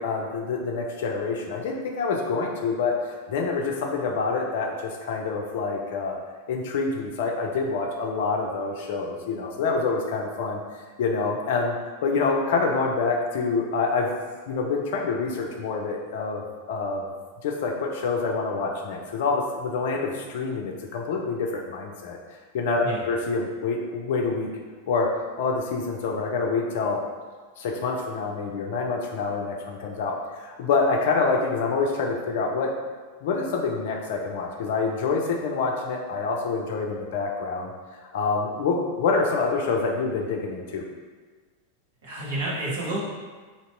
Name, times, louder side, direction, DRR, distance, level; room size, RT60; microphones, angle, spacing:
voice 1, 0.0-6.2 6.5-10.6 11.0-11.8 12.0-14.1 14.5-17.1 17.4-22.2 22.5-24.5 24.9-25.1 25.4-27.0 27.6-32.7 33.2-37.7 38.1-40.9, left 4 dB, 55° left, 1 dB, 0.5 m, -26 dB
voice 2, 42.0-43.0, right 2 dB, 55° right, -6 dB, 1.2 m, -29 dB
2.9 x 2.9 x 4.3 m, 1.4 s
figure-of-eight pair, 90°, 0 cm